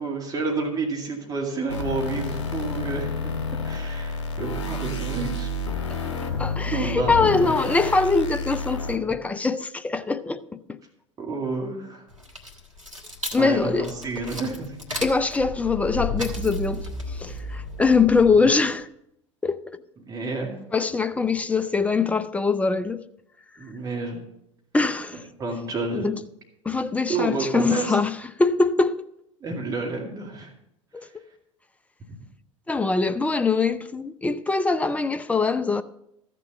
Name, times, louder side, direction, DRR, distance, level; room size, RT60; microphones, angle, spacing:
voice 1, 0.0-3.3 3.6-5.5 6.7-7.5 11.2-12.0 13.4-14.8 20.1-20.5 23.6-24.2 25.4-26.1 27.1-28.0 29.4-30.5, right 3 dB, 25° right, 2.3 m, -30 dB
sound 1, 1.7-9.0, left 3 dB, 65° left, 2.0 m, -29 dB
voice 2, 6.4-10.8 13.3-13.9 15.0-18.9 19.4-19.6 20.7-23.0 24.7-25.2 26.0-26.2 26.7-29.0 30.9-31.1 32.7-35.8, left 4 dB, 10° left, 0.5 m, -23 dB
sound 2, 12.1-18.7, left 1 dB, 85° right, 1.4 m, -34 dB
14.0 x 6.9 x 5.6 m
figure-of-eight pair, 75°, 16 cm